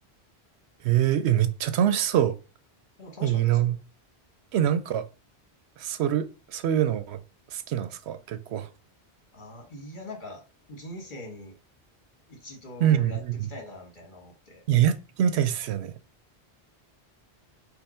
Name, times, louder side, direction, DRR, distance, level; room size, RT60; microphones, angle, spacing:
voice 1, 0.8-2.4 3.2-3.8 4.5-5.1 5.8-7.2 7.5-8.7 12.8-13.5 14.7-15.9, right 10 dB, 80° right, 0.8 m, -24 dB
voice 2, 3.0-3.7 9.3-10.4 10.7-11.6 12.3-13.2 13.5-14.6, left 2 dB, 50° left, 1.6 m, -42 dB
5.4 x 2.2 x 4.3 m
omnidirectional pair, 1.1 m